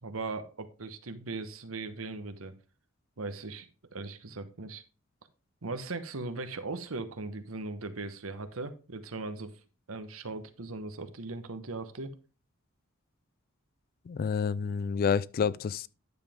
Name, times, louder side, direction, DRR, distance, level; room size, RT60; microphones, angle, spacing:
voice 1, 0.0-2.5 3.2-4.8 5.6-9.5 9.9-12.1, right 3 dB, 85° right, 1.1 m, -39 dB
voice 2, 14.1-15.9, left 6 dB, 45° left, 0.3 m, -29 dB
10.0 x 7.0 x 3.6 m
head